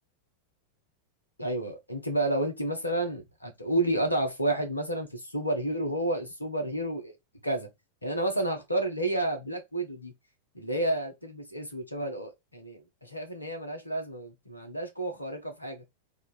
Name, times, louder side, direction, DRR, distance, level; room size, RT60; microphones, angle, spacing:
voice 1, 1.4-7.2 7.4-7.7 8.0-10.1 10.5-15.8, right 1 dB, 85° left, 0.9 m, -30 dB
3.0 x 2.4 x 4.1 m
figure-of-eight pair, 90°, 0 cm